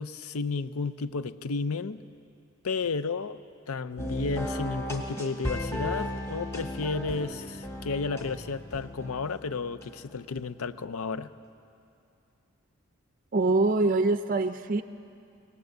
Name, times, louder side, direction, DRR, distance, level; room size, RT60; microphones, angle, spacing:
voice 1, 0.0-2.0 2.6-3.4 3.7-11.3, left 4 dB, 85° left, 14 dB, 0.6 m, -32 dB
sound 1, 4.0-10.4, equal, 10° left, 1.7 m, -36 dB
voice 2, 13.3-14.8, right 3 dB, 40° right, 9 dB, 0.4 m, -24 dB
20.0 x 19.0 x 8.0 m, 2.6 s
head